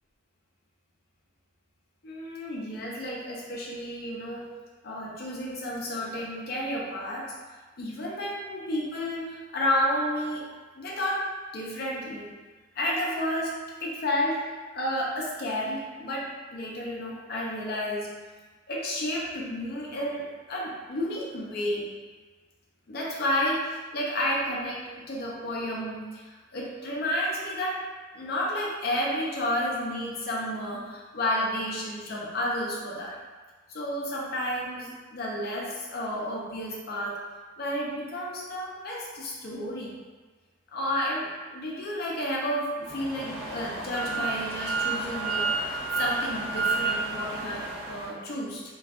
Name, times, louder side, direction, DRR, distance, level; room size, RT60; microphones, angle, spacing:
voice 1, 2.0-4.5 4.8-7.3 7.8-11.2 11.5-12.3 12.8-13.5 13.8-14.4 14.7-18.1 18.7-21.9 22.9-27.8 28.1-33.2 33.7-37.2 37.6-39.9 40.7-48.6, left 1 dB, 50° left, -3 dB, 0.4 m, -31 dB
sound 1, 42.8-48.1, right 4 dB, 35° right, 0.9 m, -30 dB
2.6 x 2.2 x 2.3 m, 1.3 s
head